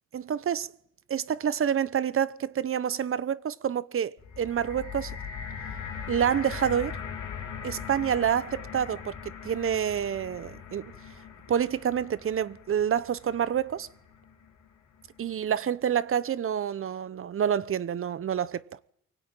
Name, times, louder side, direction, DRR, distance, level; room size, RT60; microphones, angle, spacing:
voice 1, 0.1-0.7 1.1-5.2 6.1-7.0 7.6-10.9 11.5-13.9 15.2-18.6, right 9 dB, 45° right, 0.9 m, -28 dB
sound 1, 4.2-14.4 15.2-15.3, left 7 dB, 75° left, 3.5 m, -40 dB
24.0 x 16.5 x 9.1 m
cardioid pair, 90°, 30 cm